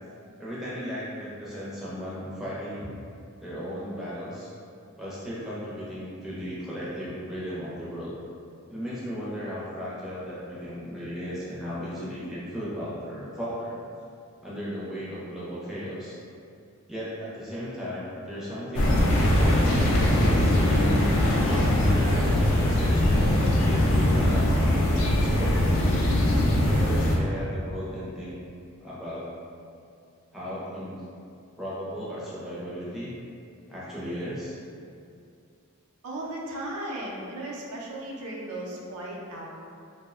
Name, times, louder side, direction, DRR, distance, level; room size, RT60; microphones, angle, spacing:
voice 1, 0.4-2.9 3.4-4.5 5.0-8.1 8.7-13.8 14.4-16.2 16.9-20.9 21.5-25.8 26.6-28.3 28.8-29.2 30.3-31.0 31.6-33.1 33.7-34.6, equal, ahead, -10 dB, 0.4 m, -35 dB
sound 1, 18.7-27.2, left 1 dB, 60° left, 0.4 m, -21 dB
voice 2, 36.0-39.5, right 1 dB, 85° right, -3 dB, 0.4 m, -36 dB
2.6 x 2.0 x 2.4 m, 2.4 s
head